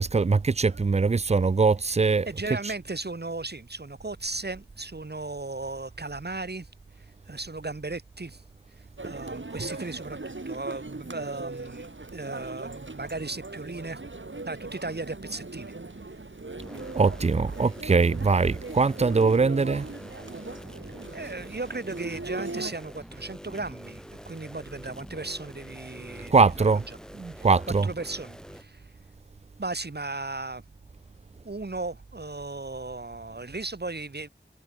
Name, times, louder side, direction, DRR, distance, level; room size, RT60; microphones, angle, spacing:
voice 1, 0.0-2.6 9.5-9.7 16.9-19.9 26.3-26.8 27.1-27.9, right 4 dB, 30° right, 0.4 m, -22 dB
voice 2, 2.2-6.7 7.3-8.4 9.0-14.0 14.4-15.8 21.1-27.0 27.3-27.5 27.8-28.8 29.6-30.6 31.4-34.3, right 3 dB, 55° right, 1.7 m, -36 dB
sound 1, 9.0-22.7, right 2 dB, 70° right, 3.9 m, -40 dB
sound 2, 16.6-28.6, equal, 5° left, 4.5 m, -45 dB
wide cardioid pair, 45°, 21 cm